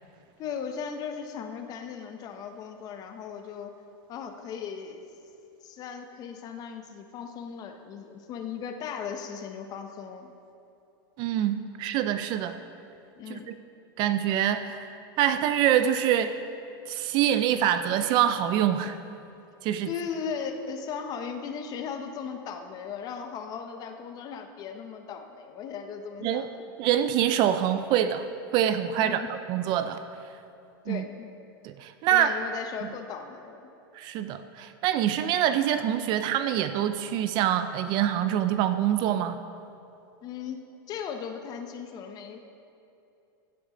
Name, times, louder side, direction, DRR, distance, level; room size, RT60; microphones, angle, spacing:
voice 1, 0.4-3.7 4.1-5.0 5.6-10.3 13.2-13.5 19.9-26.5 29.0-29.3 30.8-31.3 32.1-33.7 40.2-40.6 40.9-42.4, left 6 dB, 30° left, 6 dB, 0.8 m, -37 dB
voice 2, 11.2-12.6 13.3-13.5 14.0-16.3 16.9-19.0 19.6-19.9 26.2-26.5 26.8-28.3 28.5-30.0 30.9-31.0 31.6-32.3 33.9-39.4, right 10 dB, 40° right, 10 dB, 0.4 m, -25 dB
16.0 x 7.9 x 3.9 m, 2.8 s
supercardioid pair, 145°, 12 cm